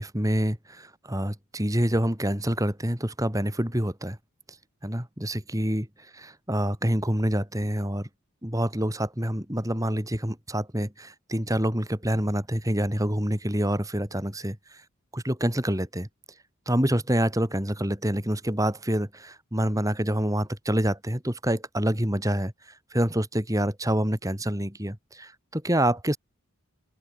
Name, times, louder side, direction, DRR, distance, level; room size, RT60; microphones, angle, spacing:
voice 1, 0.0-4.2 4.8-5.9 6.1-8.1 8.4-14.6 15.1-16.1 16.7-22.5 22.9-26.2, equal, 15° right, 3.2 m, -27 dB
open air
head